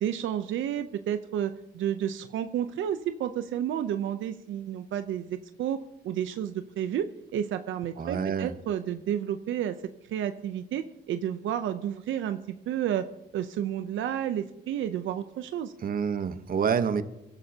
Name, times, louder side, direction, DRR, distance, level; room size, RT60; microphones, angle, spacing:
voice 1, 0.0-9.8 10.1-13.1 13.3-15.7, right 10 dB, 80° right, 10 dB, 0.7 m, -31 dB
voice 2, 8.0-8.5 15.8-17.0, right 7 dB, 45° right, 11 dB, 1.0 m, -27 dB
22.5 x 12.0 x 2.9 m, 0.87 s
cardioid pair, 90°, 20 cm